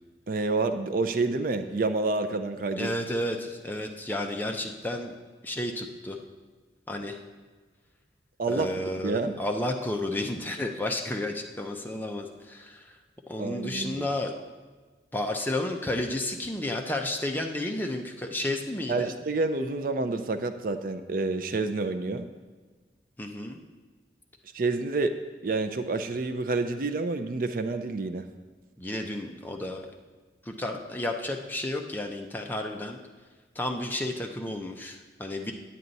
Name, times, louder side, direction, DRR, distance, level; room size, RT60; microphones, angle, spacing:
voice 1, 0.3-2.9 8.4-8.7 9.0-9.3 13.4-14.1 18.9-22.3 24.5-25.2 25.4-28.2, right 3 dB, 50° right, 9 dB, 0.5 m, -28 dB
voice 2, 2.8-5.1 5.4-6.2 6.9-7.2 8.5-13.0 13.3-14.3 15.1-19.1 23.2-23.6 28.8-29.9 30.4-33.0 33.5-35.5, left 1 dB, 10° left, 3 dB, 0.6 m, -32 dB
9.3 x 8.7 x 4.0 m, 1.4 s
head